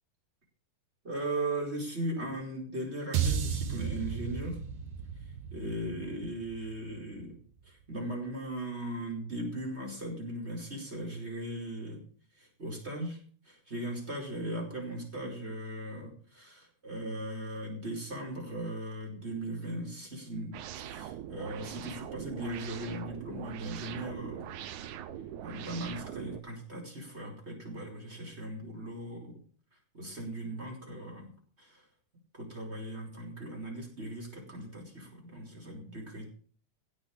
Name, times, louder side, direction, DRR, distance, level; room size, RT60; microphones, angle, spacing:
voice 1, 1.0-4.6 5.5-7.4 7.7-12.0 12.4-13.2 13.4-24.5 25.4-29.4 29.9-31.3 31.6-31.8 32.3-36.3, right 1 dB, 20° right, 0 dB, 5.1 m, -38 dB
sound 1, 3.1-7.5, right 7 dB, 60° right, 2.5 m, -34 dB
sound 2, 20.5-26.4, right 10 dB, 80° right, 2.3 m, -42 dB
16.0 x 6.6 x 8.9 m, 0.43 s
omnidirectional pair, 3.3 m